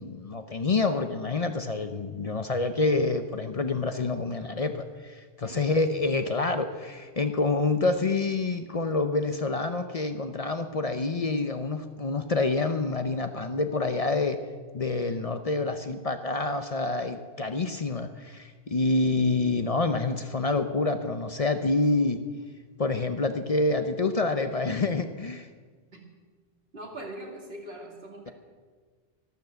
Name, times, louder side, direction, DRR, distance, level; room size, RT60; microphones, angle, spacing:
voice 1, 0.0-14.4 14.7-22.2 22.8-25.5, left 3 dB, 40° left, 9 dB, 0.7 m, -27 dB
voice 2, 26.7-28.3, right 1 dB, 75° right, 1 dB, 2.7 m, -41 dB
13.0 x 12.0 x 7.8 m, 1.5 s
omnidirectional pair, 1.0 m